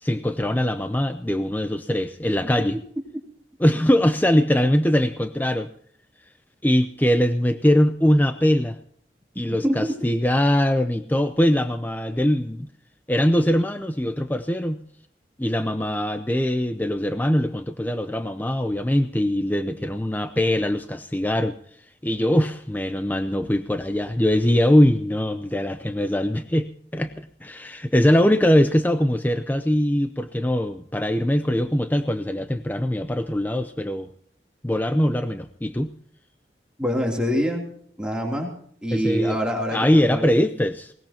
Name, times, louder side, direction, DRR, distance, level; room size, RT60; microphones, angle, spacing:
voice 1, 0.0-2.8 3.6-5.7 6.6-8.8 9.4-12.7 13.1-14.8 15.4-21.6 22.0-34.1 34.6-35.9 38.9-39.4 39.7-40.9, equal, 10° left, 9 dB, 0.6 m, -22 dB
voice 2, 36.8-37.7 38.0-38.5 38.8-40.3, equal, 5° right, -1 dB, 3.0 m, -25 dB
20.5 x 19.5 x 2.9 m, 0.64 s
head